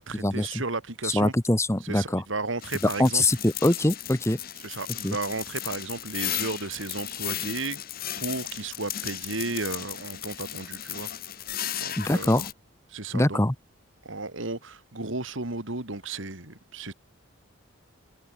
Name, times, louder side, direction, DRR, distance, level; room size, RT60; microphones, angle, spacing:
voice 1, 0.0-1.3 1.8-3.2 4.6-7.8 8.2-11.1 11.8-12.4 12.9-13.4 14.0-16.9, right 3 dB, 70° right, 2.7 m, -34 dB
voice 2, 1.0-2.2 3.0-4.4 5.0-5.2 12.0-12.4 13.1-13.5, left 1 dB, 15° left, 1.0 m, -23 dB
sound 1, 2.6-12.5, left 12 dB, 45° left, 1.5 m, -35 dB
head